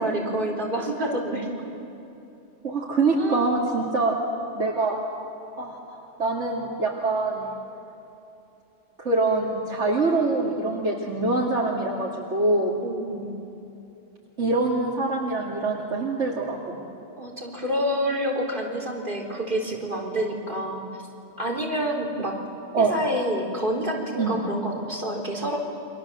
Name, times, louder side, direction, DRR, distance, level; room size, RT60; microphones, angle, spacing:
voice 1, 0.0-1.7 3.2-3.5 12.8-13.4 17.2-20.9 21.4-22.4 22.8-25.6, equal, 45° right, -1 dB, 4.2 m, -28 dB
voice 2, 2.6-4.2 4.5-5.0 5.6-7.5 9.0-12.8 14.4-16.8 22.7-22.9 24.2-24.4, right 3 dB, 85° right, -4 dB, 2.9 m, -24 dB
29.5 x 25.0 x 7.6 m, 2.8 s
omnidirectional pair, 1.2 m